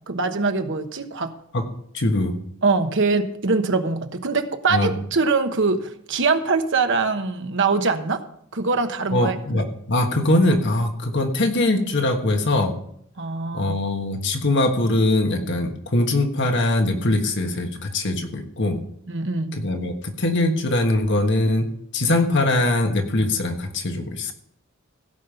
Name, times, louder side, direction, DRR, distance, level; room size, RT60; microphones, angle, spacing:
voice 1, 0.1-1.3 2.6-8.2 8.5-9.6 13.2-13.8 19.1-19.6, right 4 dB, 60° right, 8 dB, 1.1 m, -23 dB
voice 2, 1.9-2.3 4.7-4.9 9.1-12.7 13.5-18.7 19.5-21.7 21.9-24.3, left 2 dB, 60° left, 4 dB, 1.5 m, -22 dB
16.5 x 5.5 x 6.8 m, 0.69 s
head